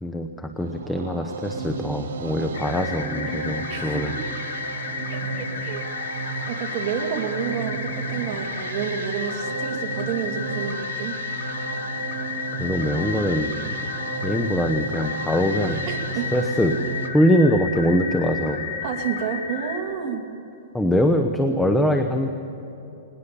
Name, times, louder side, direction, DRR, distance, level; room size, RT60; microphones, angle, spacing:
voice 1, 0.0-4.2 12.6-13.5 14.2-15.8 16.3-16.8 17.1-18.6 20.7-22.3, equal, 5° left, 5 dB, 0.9 m, -22 dB
sound 1, 0.6-17.1, right 4 dB, 85° right, 2.4 m, -33 dB
sound 2, 2.5-19.8, left 6 dB, 65° left, 4.9 m, -32 dB
voice 2, 3.7-4.3 5.1-6.1 6.5-11.2 15.9-16.3 18.8-20.2, right 7 dB, 40° right, 2 dB, 2.7 m, -30 dB
20.0 x 19.0 x 7.0 m, 2.9 s
hypercardioid pair, 150°, 0 cm